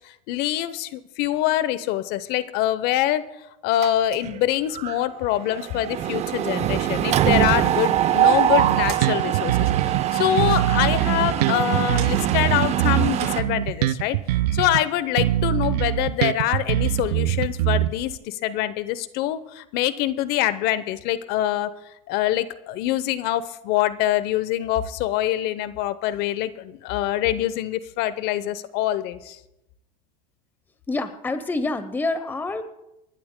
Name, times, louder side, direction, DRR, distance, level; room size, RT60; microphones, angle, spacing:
voice 1, 0.0-3.2 3.6-29.4, left 13 dB, 55° left, 15 dB, 0.8 m, -25 dB
Mechanisms, 3.8-4.4 4.8-5.0 5.2-13.4, right 12 dB, 35° right, 0.6 m, -23 dB
sound 1, 7.3-9.6 10.0-14.1, right 8 dB, 55° right, 4.2 m, -41 dB
Bass guitar, 8.6-10.0 10.4-14.8 15.2-18.2, right 14 dB, 85° right, 0.5 m, -23 dB
voice 2, 30.9-32.6, left 2 dB, 10° left, 10 dB, 0.8 m, -27 dB
28.5 x 11.5 x 2.2 m, 0.89 s
supercardioid pair, 120°, 20 cm